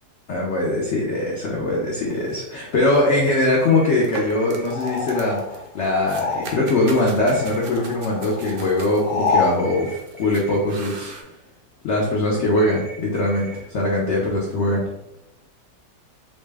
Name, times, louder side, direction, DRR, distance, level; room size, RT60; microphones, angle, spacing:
voice 1, 0.3-11.1 11.8-14.8, left 2 dB, 85° left, -2 dB, 0.6 m, -21 dB
sound 1, 2.1-11.2, right 3 dB, 80° right, 0.6 m, -42 dB
sound 2, 3.6-4.6 6.6-7.6 9.6-10.6 12.6-13.6, right 2 dB, 30° right, 0.6 m, -41 dB
sound 3, 4.7-6.9 7.2-9.6, left 4 dB, 70° left, 1.1 m, -27 dB
4.1 x 2.1 x 3.3 m, 0.85 s
omnidirectional pair, 2.0 m